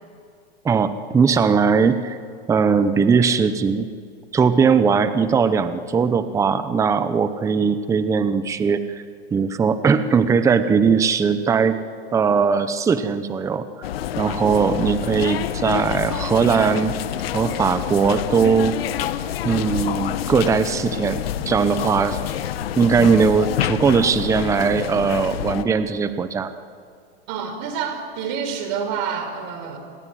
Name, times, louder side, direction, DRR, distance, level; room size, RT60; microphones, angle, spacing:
voice 1, 0.6-2.2 2.5-3.9 4.3-9.0 9.3-11.8 12.1-13.7 14.2-17.0 17.3-18.8 19.4-22.2 22.8-26.5, right 5 dB, 10° right, 11 dB, 0.8 m, -19 dB
sound 1, 13.8-25.6, left 11 dB, 70° left, 1.5 m, -27 dB
voice 2, 27.3-29.8, right 7 dB, 45° right, 7 dB, 4.7 m, -28 dB
29.5 x 21.0 x 9.4 m, 2.2 s
supercardioid pair, 150°, 31 cm